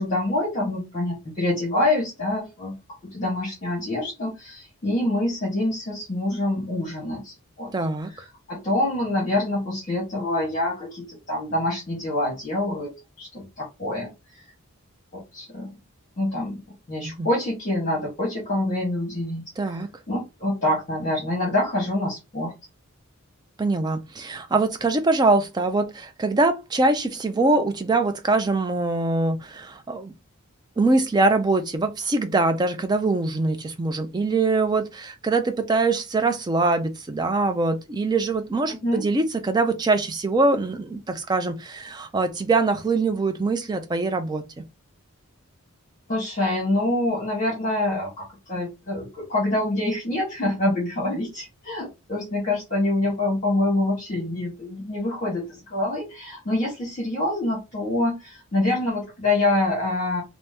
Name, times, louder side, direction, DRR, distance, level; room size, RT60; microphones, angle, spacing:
voice 1, 0.0-2.8 3.0-7.7 8.1-14.4 15.1-15.7 16.2-16.6 16.9-19.4 19.7-19.8 20.1-22.5 38.7-39.0 46.1-60.2, left 1 dB, 35° left, 1.0 m, -26 dB
voice 2, 7.7-8.1 17.2-17.3 19.6-19.9 23.6-30.1 30.8-44.4, right 3 dB, 20° right, 0.3 m, -23 dB
2.7 x 2.0 x 3.4 m
head